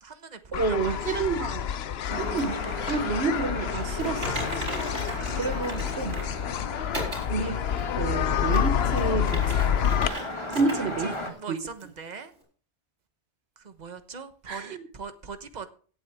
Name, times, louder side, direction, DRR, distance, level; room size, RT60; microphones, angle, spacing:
voice 1, 0.0-1.2 5.1-6.1 10.0-12.3 13.6-15.7, right 5 dB, 40° right, 1.1 m, -42 dB
sound 1, 0.5-10.1, left 9 dB, 65° left, 0.9 m, -28 dB
voice 2, 0.5-1.7 2.2-2.5 2.9-4.9 5.4-6.1 7.3-7.6 8.0-9.9 10.3-11.1 11.5-11.6 14.5-14.8, right 4 dB, 65° right, 1.3 m, -29 dB
sound 2, 2.1-11.3, left 2 dB, 25° left, 1.6 m, -36 dB
Typing, 4.0-6.3 6.9-7.3 7.8-7.9 8.4-10.2 10.5-10.8 11.1-11.2 11.8-11.9, right 1 dB, 80° right, 5.1 m, -36 dB
17.0 x 8.4 x 3.5 m
omnidirectional pair, 1.2 m